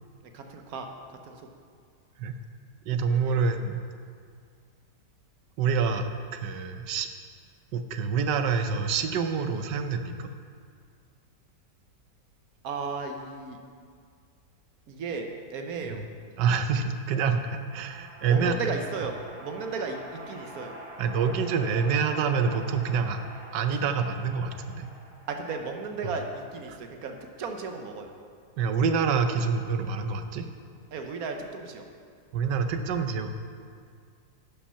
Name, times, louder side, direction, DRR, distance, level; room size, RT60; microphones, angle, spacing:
voice 1, 0.2-1.5 3.2-3.4 12.6-13.6 14.9-16.0 18.2-20.8 25.3-28.1 30.9-31.8, right 4 dB, 65° right, 4 dB, 1.2 m, -35 dB
voice 2, 2.9-3.8 5.6-7.1 7.7-10.3 15.8-16.0 16.4-18.6 21.0-23.2 23.5-24.9 26.7-26.8 28.6-30.5 32.3-33.3, right 5 dB, 90° right, 8 dB, 1.3 m, -27 dB
sound 1, 16.8-26.2, right 1 dB, 35° right, 2.7 m, -46 dB
11.0 x 5.7 x 5.6 m, 2.1 s
omnidirectional pair, 1.8 m